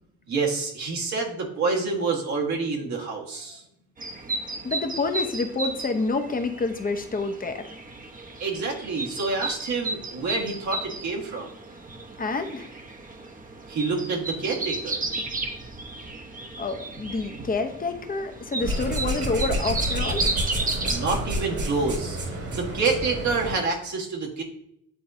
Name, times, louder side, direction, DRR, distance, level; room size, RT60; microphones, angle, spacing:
voice 1, 0.3-3.6 8.4-11.5 13.7-15.0 20.8-24.4, right 4 dB, 70° right, -1 dB, 1.6 m, -28 dB
sound 1, 4.0-21.7, right 2 dB, 25° right, 0.9 m, -34 dB
voice 2, 4.6-7.7 12.2-12.7 16.6-20.3, left 3 dB, 30° left, 7 dB, 0.8 m, -28 dB
sound 2, 18.6-23.6, right 1 dB, 50° right, 1.8 m, -29 dB
9.4 x 3.8 x 2.7 m, 0.75 s
cardioid pair, 90°, 30 cm